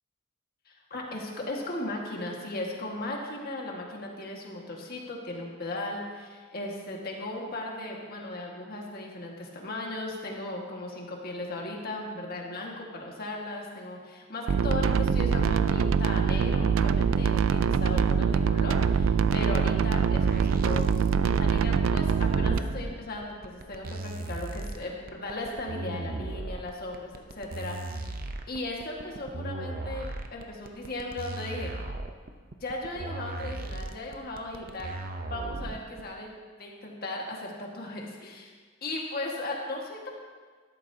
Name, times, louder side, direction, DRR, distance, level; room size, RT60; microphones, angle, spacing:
voice 1, 0.9-28.1 28.5-31.7 32.6-35.0 35.3-36.3 36.6-38.5 38.8-40.1, left 2 dB, 50° left, -1 dB, 1.7 m, -37 dB
sound 1, 14.5-22.6, right 6 dB, 85° right, 0.4 m, -24 dB
sound 2, 20.0-36.0, right 2 dB, 45° right, 0.7 m, -37 dB
13.5 x 11.5 x 2.8 m, 1.5 s
head